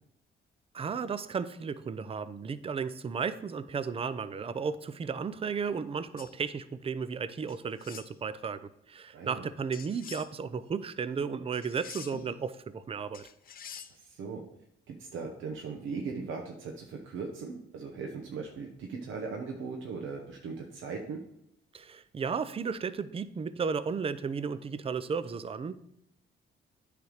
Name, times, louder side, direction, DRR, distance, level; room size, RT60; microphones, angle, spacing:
voice 1, 0.7-13.3 21.7-25.7, right 5 dB, 30° right, 14 dB, 0.5 m, -34 dB
sound 1, 6.2-6.4 7.5-8.1 9.7-10.3 11.5-12.3 13.1-13.9, left 8 dB, 50° left, 0.6 m, -46 dB
voice 2, 9.1-9.5 13.9-14.4 14.9-21.2, right 4 dB, 80° right, 1 dB, 1.0 m, -39 dB
9.3 x 3.4 x 6.4 m, 0.79 s
cardioid pair, 90°, 20 cm